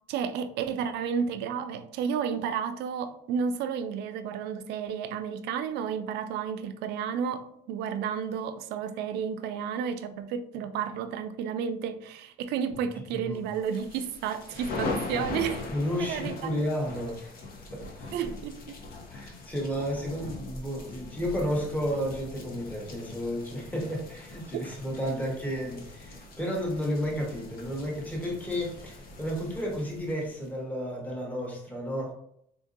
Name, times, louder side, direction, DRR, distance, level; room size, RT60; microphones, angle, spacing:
voice 1, 0.1-15.6 16.0-16.5 18.1-18.8 24.5-24.6, right 7 dB, 80° right, 0.4 m, -32 dB
voice 2, 13.1-13.4 15.7-17.3 17.7-18.3 19.1-32.1, equal, 10° left, 1.0 m, -32 dB
sound 1, 13.5-30.5, left 3 dB, 60° left, 0.7 m, -41 dB
3.7 x 2.6 x 2.5 m
cardioid pair, 110°, 17 cm